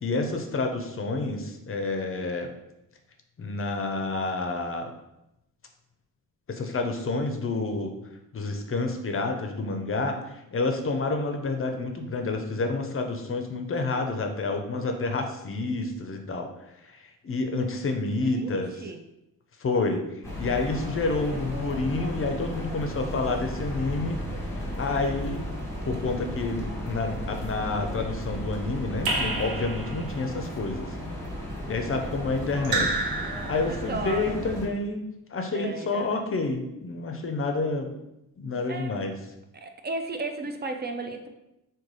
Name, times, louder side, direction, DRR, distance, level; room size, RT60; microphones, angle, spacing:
voice 1, 0.0-2.5 3.4-4.9 6.5-7.9 8.3-16.5 16.8-18.7 19.6-20.0 20.4-24.2 24.6-25.4 25.9-30.9 31.7-32.9 33.3-37.9 38.4-39.1, left 3 dB, 35° left, 5 dB, 0.5 m, -29 dB
voice 2, 18.1-19.0 21.3-21.8 33.7-34.6 35.5-36.3 38.7-39.2 39.5-41.3, right 3 dB, 30° right, 6 dB, 0.4 m, -35 dB
sound 1, 20.2-34.7, equal, 10° left, 1.0 m, -35 dB
Raindrop / Drip, 29.1-30.3 32.6-34.0, right 2 dB, 85° right, 0.7 m, -29 dB
3.1 x 2.2 x 3.9 m, 0.88 s
cardioid pair, 65°, 36 cm